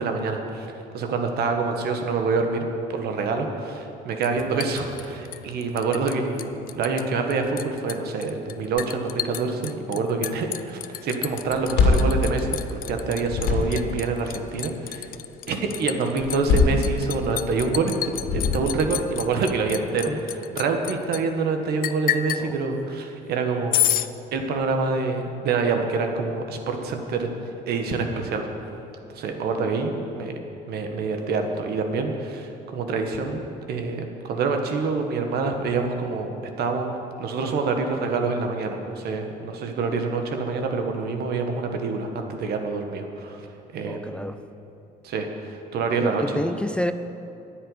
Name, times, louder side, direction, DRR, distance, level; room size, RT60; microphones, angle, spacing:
voice 1, 0.0-2.6 2.9-15.1 15.5-17.9 18.3-23.8 24.3-27.3 27.7-28.5 29.1-30.3 30.7-43.5 43.7-44.3 45.0-46.4, right 4 dB, 70° right, 4 dB, 1.6 m, -26 dB
Liquid, 4.2-6.1 6.4-7.0 7.3-21.2 21.8-22.4 23.7-24.1, left 12 dB, 60° left, 0.5 m, -30 dB
sound 1, 11.5-13.0 13.2-14.0 16.2-17.4 18.2-19.0, left 3 dB, 80° left, 2.1 m, -22 dB
voice 2, 43.9-44.4 46.0-46.9, left 1 dB, 5° left, 10 dB, 0.4 m, -29 dB
10.0 x 8.0 x 9.8 m, 2.8 s
cardioid pair, 110°, 17 cm